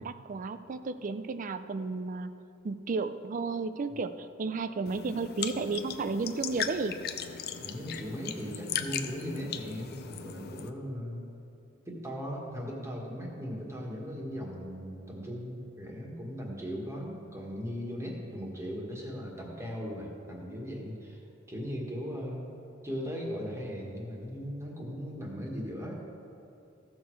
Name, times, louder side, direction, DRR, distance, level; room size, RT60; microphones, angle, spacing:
voice 1, 0.0-2.3 2.6-7.0, right 4 dB, 40° right, 11 dB, 0.4 m, -33 dB
sound 1, 4.9-10.7, left 8 dB, 50° left, 0.5 m, -38 dB
voice 2, 7.6-11.3 11.9-21.2 21.5-22.5 22.8-26.0, equal, 15° right, -1 dB, 1.6 m, -38 dB
15.0 x 6.3 x 4.7 m, 2.8 s
head